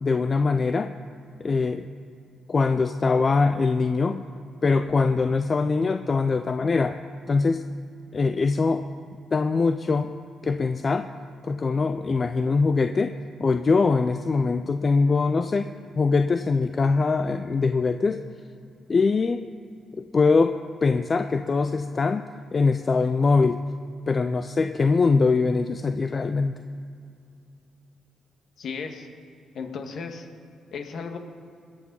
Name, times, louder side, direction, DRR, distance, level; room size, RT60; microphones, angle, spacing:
voice 1, 0.0-1.0 1.4-1.9 2.5-4.3 4.6-7.0 7.3-7.6 8.1-8.8 9.3-10.1 10.4-11.1 11.4-13.1 13.4-18.2 18.9-19.4 20.0-22.2 22.5-23.6 24.1-26.6, left 4 dB, 45° left, 9 dB, 0.6 m, -22 dB
voice 2, 28.6-29.1 29.5-30.3 30.7-31.2, left 5 dB, 65° left, 4 dB, 1.8 m, -34 dB
21.0 x 8.1 x 5.5 m, 2.5 s
hypercardioid pair, 45°, 0 cm